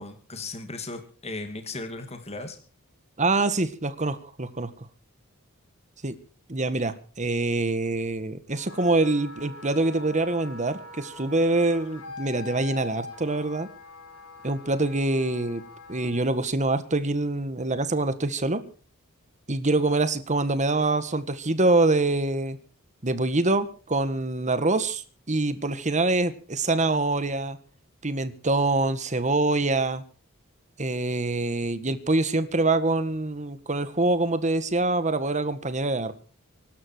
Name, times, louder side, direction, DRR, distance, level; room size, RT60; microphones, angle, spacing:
voice 1, 0.0-2.6, left 3 dB, 30° left, 6 dB, 2.5 m, -36 dB
voice 2, 3.2-4.9 6.0-6.2 6.5-13.7 14.4-15.6 15.9-18.6 19.5-22.6 23.0-27.6 28.0-30.0 30.8-36.1, right 2 dB, 35° right, 12 dB, 1.7 m, -25 dB
Wind instrument woodwind instrument, 8.5-16.2, left 3 dB, 80° left, 7.2 m, -43 dB
24.0 x 12.5 x 4.6 m, 0.39 s
head